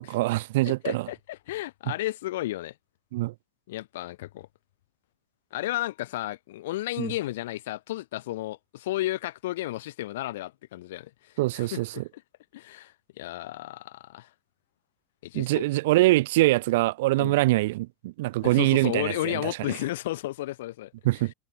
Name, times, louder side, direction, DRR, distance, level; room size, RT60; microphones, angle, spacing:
voice 1, 0.0-1.1 3.1-3.3 7.0-7.1 11.4-12.0 15.3-19.5 21.0-21.3, right 19 dB, 50° right, 0.4 m, -24 dB
voice 2, 0.6-2.7 3.7-4.5 5.5-12.2 12.5-14.3 15.2-15.6 17.2-17.4 18.4-20.9, left 16 dB, 55° left, 1.0 m, -33 dB
figure-of-eight pair, 90°, 0 cm